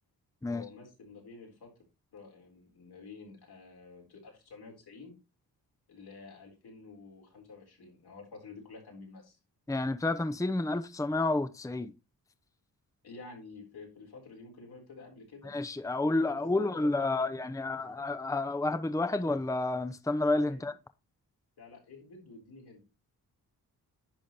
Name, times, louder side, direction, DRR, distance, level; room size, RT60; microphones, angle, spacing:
voice 1, 0.5-1.7 2.1-5.2 5.9-9.4 13.0-15.5 16.2-16.9 17.2-17.3 17.8-17.9 20.5-20.6 21.6-22.8, left 4 dB, 80° left, 4.1 m, -50 dB
voice 2, 9.7-11.9 15.4-20.7, left 2 dB, 10° left, 0.7 m, -30 dB
10.5 x 5.2 x 4.4 m
cardioid pair, 60°, 38 cm